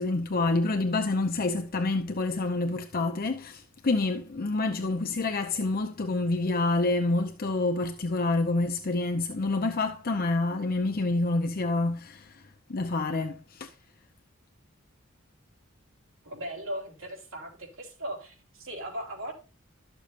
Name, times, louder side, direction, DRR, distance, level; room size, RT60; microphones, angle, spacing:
voice 1, 0.0-12.4 12.7-13.7, left 2 dB, 45° left, 0.7 m, -27 dB
voice 2, 16.2-19.3, right 1 dB, 70° right, 3.4 m, -38 dB
12.5 x 6.9 x 2.5 m
head